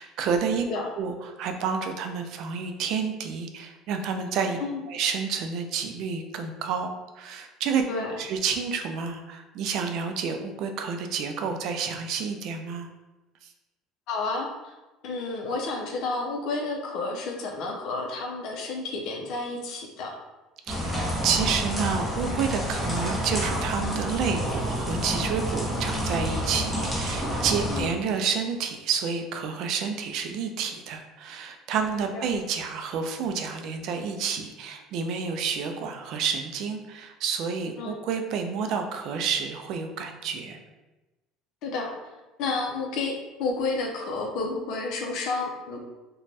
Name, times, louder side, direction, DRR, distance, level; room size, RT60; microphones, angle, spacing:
voice 1, 0.0-0.7 1.0-4.6 4.9-7.8 8.2-12.9 13.4-13.5 20.7-40.6, right 6 dB, 60° right, 5 dB, 0.3 m, -29 dB
voice 2, 14.1-14.7 15.0-20.2 27.7-27.9 32.1-32.2 37.8-38.0 41.6-41.9 42.4-43.1 43.4-45.8, left 3 dB, 65° left, 1 dB, 0.5 m, -31 dB
sound 1, 20.7-27.8, equal, 5° right, 0.7 m, -29 dB
2.6 x 2.1 x 3.2 m, 1.1 s
cardioid pair, 125°, 0 cm